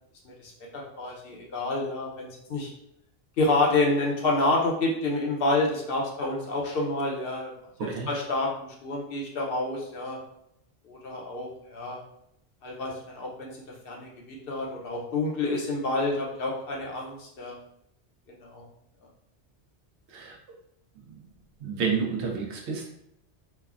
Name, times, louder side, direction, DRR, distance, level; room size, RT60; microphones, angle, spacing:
voice 1, 0.2-2.7 3.4-7.5 8.1-10.2 10.8-12.0 12.6-17.6 18.3-18.6, left 2 dB, 65° left, -2 dB, 0.8 m, -28 dB
voice 2, 21.0-21.3 21.6-22.9, right 5 dB, 80° right, 1 dB, 0.9 m, -30 dB
3.2 x 2.1 x 2.3 m, 0.77 s
omnidirectional pair, 1.1 m